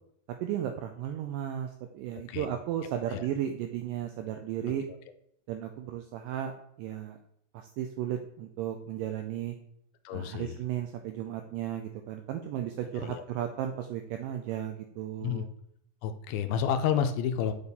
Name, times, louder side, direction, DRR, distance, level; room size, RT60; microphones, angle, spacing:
voice 1, 0.4-4.8 5.5-6.5 6.8-7.2 7.5-9.6 10.1-15.5, right 10 dB, 85° right, 5 dB, 1.9 m, -34 dB
voice 2, 10.1-10.6 12.9-13.2 15.2-15.5 16.0-17.5, left 8 dB, 85° left, 8 dB, 2.4 m, -30 dB
6.8 x 4.1 x 3.4 m, 0.70 s
omnidirectional pair, 4.3 m